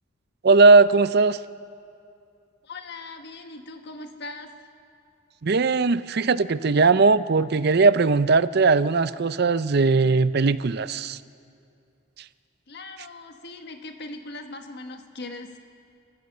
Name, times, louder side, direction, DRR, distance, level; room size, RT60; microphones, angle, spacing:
voice 1, 0.4-1.4 5.4-11.2, right 4 dB, 50° right, 15 dB, 0.5 m, -19 dB
voice 2, 2.6-4.5 12.7-15.6, left 2 dB, 55° left, 5 dB, 1.6 m, -39 dB
29.0 x 14.5 x 6.7 m, 2.5 s
head